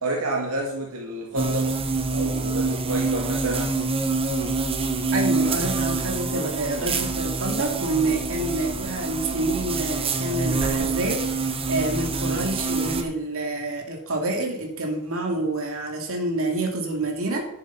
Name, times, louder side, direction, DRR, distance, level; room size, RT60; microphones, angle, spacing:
voice 1, 0.0-1.7 2.1-3.8, right 1 dB, 80° right, -1 dB, 2.0 m, -29 dB
sound 1, 1.4-13.0, right 3 dB, 25° right, 1.0 m, -26 dB
voice 2, 5.1-17.4, right 2 dB, 65° right, 1 dB, 2.5 m, -28 dB
11.0 x 7.2 x 5.9 m, 0.78 s
head